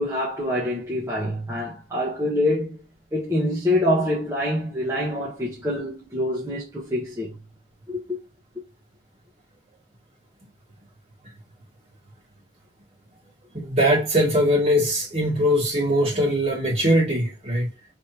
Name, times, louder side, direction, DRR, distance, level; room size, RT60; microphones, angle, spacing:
voice 1, 0.0-2.8 3.1-7.4 7.9-8.2, left 1 dB, 15° right, 1.1 m, -25 dB
voice 2, 13.5-17.7, equal, 35° right, 2.3 m, -21 dB
5.2 x 3.5 x 2.9 m
head